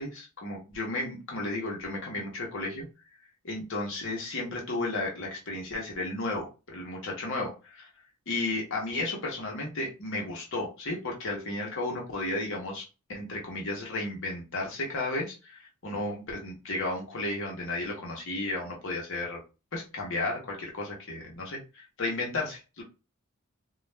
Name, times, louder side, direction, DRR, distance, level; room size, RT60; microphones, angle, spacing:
voice 1, 0.0-2.9 3.4-7.9 8.3-19.4 19.7-22.8, left 2 dB, 60° left, -1 dB, 1.0 m, -33 dB
2.4 x 2.3 x 3.2 m, 0.30 s
head